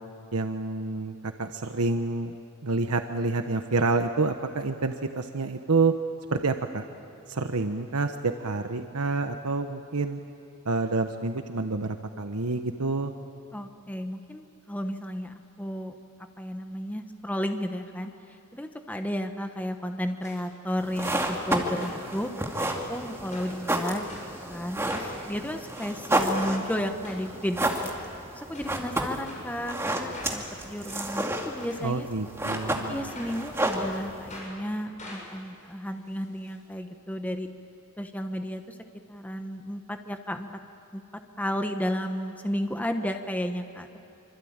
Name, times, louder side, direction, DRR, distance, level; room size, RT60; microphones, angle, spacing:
voice 1, 0.3-2.3 2.6-5.9 6.3-6.8 7.3-10.2 10.6-13.1 31.8-33.1, right 3 dB, 90° right, 6 dB, 1.1 m, -28 dB
voice 2, 13.5-15.9 16.4-22.3 22.9-24.1 24.4-27.7 28.3-32.1 32.9-37.5 38.0-38.7 39.1-40.5 40.9-41.0 41.4-44.0, equal, 5° left, 6 dB, 1.1 m, -33 dB
sound 1, 20.2-20.4 21.0-21.5 21.8-22.8 23.3-23.6 24.1-24.3 24.9-25.1 25.6-25.9 26.4-26.6 27.0-27.2 27.7-28.1 28.5-28.7 29.2-29.4 30.1-30.4 30.8-31.0 31.6-31.8 32.5-33.4 33.7-33.9 34.3-34.5 35.0-36.5 36.8-36.9 37.1-37.2, left 2 dB, 35° left, 7.8 m, -45 dB
sound 2, 20.8-34.4, right 1 dB, 10° right, 2.3 m, -31 dB
26.0 x 25.5 x 8.9 m, 2.9 s
head